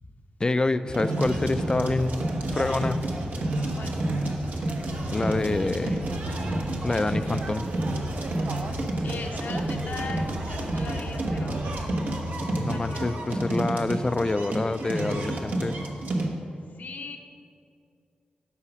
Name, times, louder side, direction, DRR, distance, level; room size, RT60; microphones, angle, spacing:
voice 1, 0.4-2.2 2.5-3.0 5.1-6.0 6.8-7.7 12.5-15.8, left 2 dB, 25° left, 12 dB, 0.4 m, -26 dB
sound 1, 0.9-16.3, right 1 dB, 70° right, 1.1 m, -30 dB
sound 2, 1.2-11.9, right 2 dB, 50° right, 0.6 m, -39 dB
voice 2, 9.0-11.8 12.7-13.5 16.7-17.2, left 4 dB, 70° left, 3 dB, 0.8 m, -39 dB
8.5 x 4.9 x 6.2 m, 2.4 s
cardioid pair, 70°, 3 cm